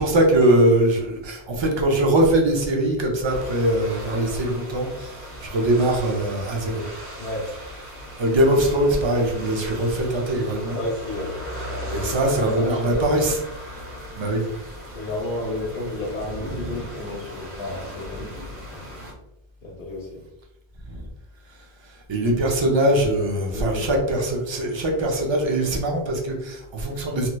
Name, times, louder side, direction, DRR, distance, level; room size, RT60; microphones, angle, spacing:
voice 1, 0.0-6.8 8.2-10.8 11.9-13.4 14.2-14.5 20.9-21.0 22.1-27.3, right 1 dB, 35° right, 0 dB, 0.5 m, -22 dB
sound 1, 3.2-19.1, equal, 55° right, 1.0 m, -37 dB
voice 2, 7.2-7.5 10.7-11.4 11.7-13.1 14.9-18.8 19.6-20.2 23.5-23.9, left 2 dB, 80° left, -4 dB, 1.0 m, -32 dB
3.1 x 2.9 x 2.2 m, 0.87 s
omnidirectional pair, 1.1 m